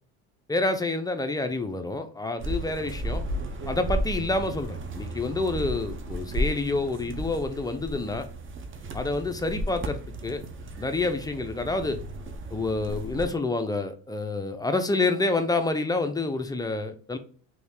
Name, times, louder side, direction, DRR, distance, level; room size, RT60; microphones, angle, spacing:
voice 1, 0.5-3.2 3.7-8.3 8.9-10.4 10.8-12.0 12.5-17.2, left 3 dB, 10° left, 7 dB, 0.4 m, -28 dB
sound 1, 2.4-13.3, right 1 dB, 30° right, 0.6 m, -34 dB
3.1 x 2.7 x 3.6 m, 0.41 s
supercardioid pair, 85°, 42 cm